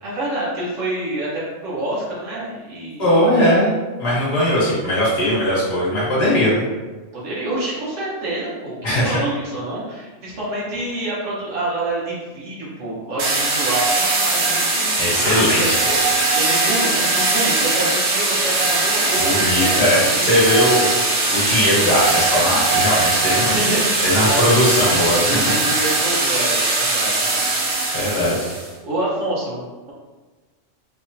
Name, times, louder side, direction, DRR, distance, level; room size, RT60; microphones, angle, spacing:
voice 1, 0.0-3.1 7.1-15.7 16.3-20.2 23.2-24.4 25.2-27.4 28.8-29.9, right 1 dB, 70° right, -7 dB, 1.4 m, -27 dB
voice 2, 3.0-3.7 4.0-6.6 8.8-9.2 15.0-16.0 19.2-20.9 21.3-23.6 24.0-25.5 27.9-28.5, left 1 dB, 55° left, -7 dB, 1.4 m, -19 dB
sound 1, 13.2-28.7, right 2 dB, 90° right, 1.2 m, -20 dB
3.4 x 3.3 x 2.7 m, 1.3 s
omnidirectional pair, 1.3 m